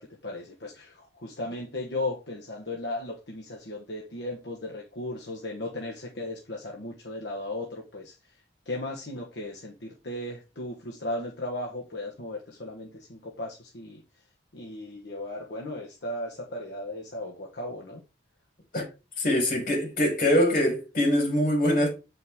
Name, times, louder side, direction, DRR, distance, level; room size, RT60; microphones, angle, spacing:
voice 1, 0.0-8.2 8.6-14.0 14.5-18.0, left 1 dB, 65° left, 1.3 m, -36 dB
voice 2, 19.2-21.9, left 1 dB, 50° left, 4.5 m, -23 dB
8.1 x 5.4 x 3.6 m
head